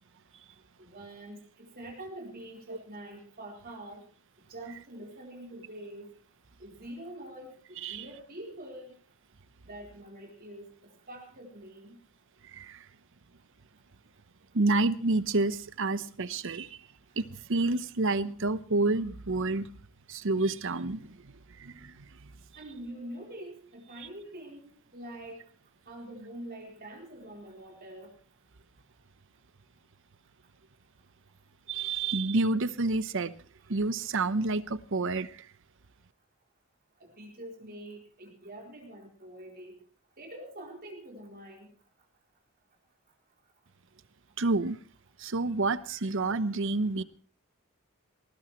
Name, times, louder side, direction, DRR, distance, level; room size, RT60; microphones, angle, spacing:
voice 1, 0.8-4.0 4.5-6.1 6.6-9.0 9.6-12.0 22.6-24.6 24.9-25.4 25.9-28.1 37.0-39.7 40.2-41.7, right 1 dB, 45° right, 0 dB, 4.1 m, -45 dB
voice 2, 12.5-12.8 14.5-16.8 17.2-19.7 20.1-22.1 31.7-33.3 33.7-35.5 44.4-44.8 45.2-47.0, right 3 dB, 60° right, 14 dB, 0.8 m, -29 dB
19.5 x 19.0 x 3.1 m, 0.41 s
head